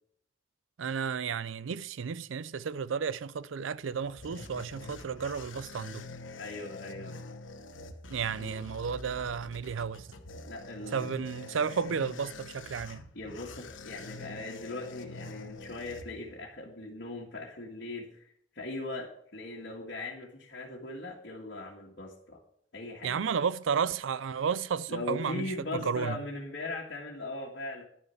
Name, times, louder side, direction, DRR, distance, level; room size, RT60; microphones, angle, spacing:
voice 1, 0.8-6.0 8.1-10.1 10.9-13.0 23.0-26.2, right 6 dB, 85° right, 0.5 m, -32 dB
sound 1, 3.6-16.6, left 3 dB, 85° left, 1.1 m, -46 dB
voice 2, 6.4-7.2 8.4-8.6 10.5-11.1 13.1-22.4 22.7-23.2 24.9-27.8, left 2 dB, 60° left, 1.8 m, -39 dB
11.0 x 6.5 x 5.8 m
head